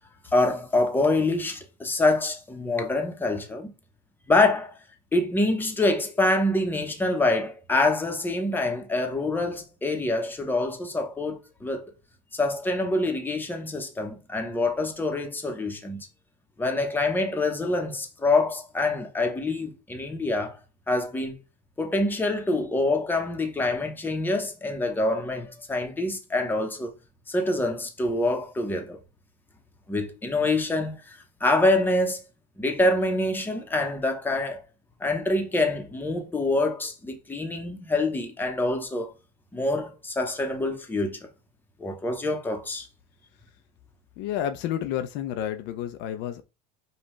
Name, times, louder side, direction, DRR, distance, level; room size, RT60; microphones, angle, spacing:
voice 1, 0.3-3.7 4.3-4.8 5.1-11.9 12.3-16.1 16.6-20.6 20.9-21.3 21.8-26.9 27.3-29.0 29.9-32.2 32.6-34.6 35.0-39.1 39.5-41.2 41.8-42.9, left 2 dB, 10° left, 0.9 m, -26 dB
voice 2, 44.2-46.4, left 10 dB, 60° left, 0.6 m, -30 dB
5.3 x 2.4 x 3.1 m
supercardioid pair, 120°, 21 cm